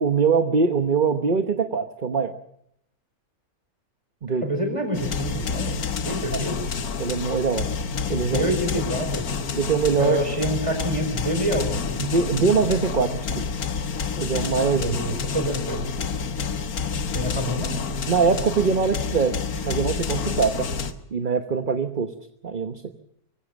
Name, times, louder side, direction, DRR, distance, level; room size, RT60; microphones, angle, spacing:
voice 1, 0.0-2.3 4.2-4.4 6.3-6.4 7.0-7.6 8.1-8.5 9.5-10.2 12.0-13.4 14.2-14.9 18.1-19.3 19.6-20.7 21.1-22.1 22.4-22.8, right 5 dB, 35° right, 8 dB, 1.2 m, -22 dB
voice 2, 4.3-6.7 8.2-9.3 10.0-12.0 14.7-15.8 17.1-17.8, right 1 dB, 20° right, 5 dB, 5.2 m, -27 dB
sound 1, 4.9-20.9, left 5 dB, 75° left, 1.8 m, -28 dB
24.0 x 16.5 x 7.4 m, 0.76 s
omnidirectional pair, 1.6 m